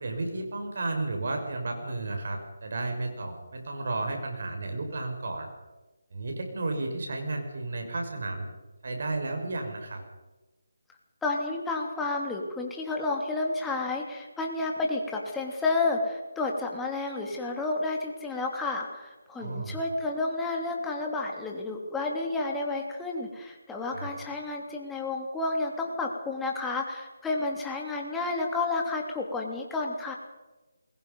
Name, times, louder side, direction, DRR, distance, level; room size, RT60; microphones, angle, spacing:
voice 1, 0.0-5.5 6.1-8.5 8.8-10.0 19.3-19.8 23.9-24.1, right 2 dB, 55° right, 3 dB, 6.0 m, -33 dB
voice 2, 11.2-30.1, left 3 dB, 5° left, 0 dB, 2.9 m, -31 dB
28.5 x 21.5 x 5.5 m, 1.1 s
figure-of-eight pair, 165°, 0 cm